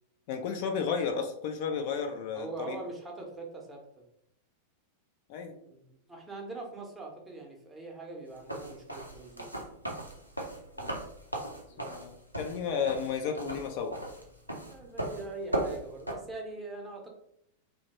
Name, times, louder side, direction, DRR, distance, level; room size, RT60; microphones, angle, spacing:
voice 1, 0.3-2.8 5.3-5.5 10.7-11.0 11.8-14.1, left 6 dB, 50° left, 4 dB, 0.3 m, -33 dB
voice 2, 2.3-4.0 5.6-9.6 11.7-12.0 14.6-17.1, right 3 dB, 10° right, -1 dB, 0.7 m, -43 dB
sound 1, 8.4-16.1, right 1 dB, 90° right, 0.5 m, -37 dB
2.8 x 2.1 x 2.8 m, 0.72 s
figure-of-eight pair, 90°, 0 cm